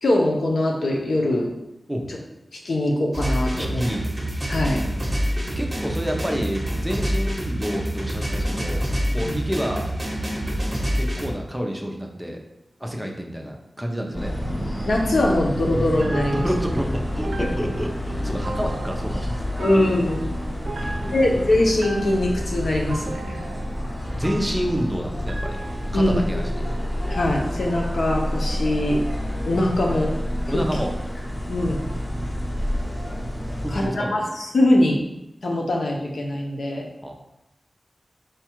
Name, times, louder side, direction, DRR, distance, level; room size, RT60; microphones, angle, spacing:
voice 1, 0.0-1.5 2.6-3.8 4.5-4.8 9.2-9.4 14.9-16.5 19.6-20.2 21.1-23.4 25.9-26.2 27.1-29.0 29.5-30.1 31.5-31.8 33.7-35.0 35.4-36.9, left 1 dB, 85° left, 0 dB, 0.7 m, -22 dB
sound 1, 3.1-11.3, equal, 25° right, 1.0 m, -26 dB
voice 2, 3.5-4.0 5.2-9.9 10.9-12.4 12.8-14.3 16.3-19.4 20.8-21.0 24.1-25.6 25.9-26.7 30.5-30.9 33.5-34.3 37.0-37.1, equal, 5° right, 1 dB, 0.6 m, -29 dB
sound 2, 14.1-33.9, equal, 30° left, 1.2 m, -28 dB
sound 3, 15.8-26.4, right 2 dB, 80° right, 0.4 m, -37 dB
4.7 x 2.3 x 4.4 m, 0.88 s
wide cardioid pair, 85°, 0 cm